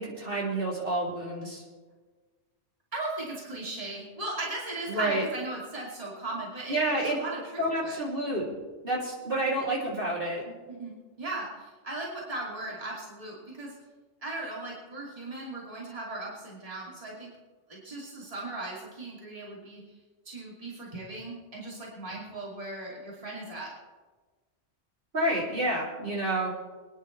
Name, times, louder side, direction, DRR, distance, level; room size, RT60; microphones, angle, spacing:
voice 1, 0.0-1.6 4.9-5.2 6.7-7.2 7.6-8.5 8.8-10.5 25.1-26.5, right 1 dB, 50° right, -5 dB, 3.3 m, -29 dB
voice 2, 2.9-7.4 7.8-8.0 10.7-13.7 14.2-17.3 17.7-19.8 20.2-23.7, right 2 dB, 30° right, -5 dB, 2.9 m, -37 dB
25.5 x 10.5 x 3.3 m, 1.4 s
omnidirectional pair, 1.2 m